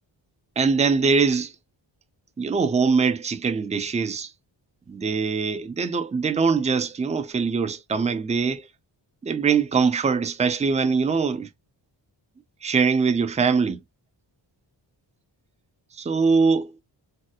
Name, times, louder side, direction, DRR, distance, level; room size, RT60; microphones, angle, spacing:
voice 1, 0.6-1.5 2.4-4.3 4.9-8.6 9.2-11.5 12.6-13.8 16.0-16.7, right 5 dB, 15° right, 0.3 m, -22 dB
3.2 x 2.2 x 2.7 m
wide cardioid pair, 115°, 46 cm